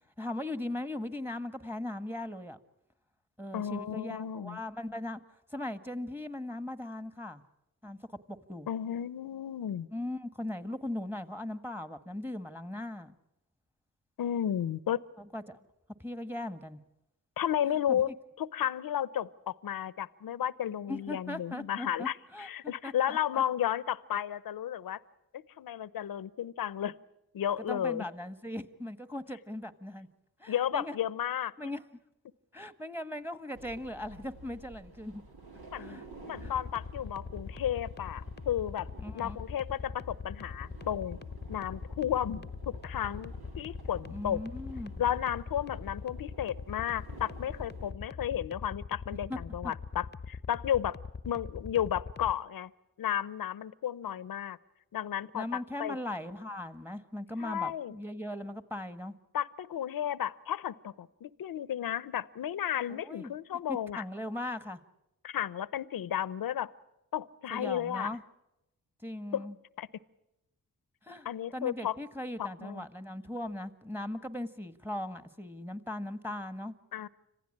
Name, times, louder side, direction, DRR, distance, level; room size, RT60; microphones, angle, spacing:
voice 1, 0.2-2.6 3.4-5.2 5.5-7.4 7.8-8.0 8.3-8.7 9.9-13.2 15.2-15.6 16.0-16.8 17.9-18.1 20.9-23.4 27.6-30.1 30.4-30.9 31.6-31.8 32.5-35.2 35.7-36.1 36.4-36.5 39.0-39.4 44.1-44.9 49.3-49.4 49.6-49.7 55.3-59.2 62.9-63.3 64.0-64.8 67.5-68.2 69.0-69.5 71.0-71.3 71.5-76.7, left 1 dB, 5° right, 12 dB, 1.5 m, -39 dB
voice 2, 3.5-4.6 8.7-9.9 14.2-15.0 17.4-18.1 18.4-25.0 25.3-26.9 27.3-28.0 30.5-31.5 35.7-36.0 36.2-38.9 39.1-41.2 41.5-44.4 45.0-51.0 51.2-52.7 53.0-54.6 54.9-56.0 57.4-58.0 59.3-64.0 65.2-66.7 67.1-68.2 69.3-69.4 69.8-69.9 71.2-72.0 72.4-72.8 76.9-77.1, left 10 dB, 70° left, 19 dB, 0.7 m, -33 dB
sound 1, 33.5-47.9, right 2 dB, 85° right, 2.6 m, -51 dB
sound 2, 36.4-52.3, left 5 dB, 30° left, 0.8 m, -42 dB
26.5 x 15.5 x 8.7 m, 0.91 s
cardioid pair, 50°, 36 cm